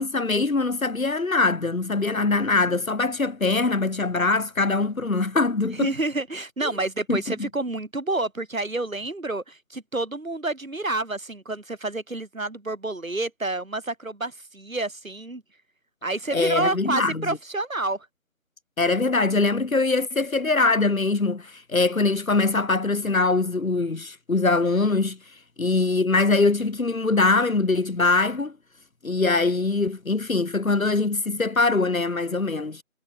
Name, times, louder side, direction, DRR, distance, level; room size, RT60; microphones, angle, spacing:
voice 1, 0.0-5.9 7.1-7.5 16.3-17.4 18.8-25.2 25.6-28.5 29.0-32.8, left 3 dB, 80° left, 1.9 m, -23 dB
voice 2, 5.7-15.4 16.0-18.1, right 2 dB, 75° right, 4.6 m, -29 dB
figure-of-eight pair, 180°, 41 cm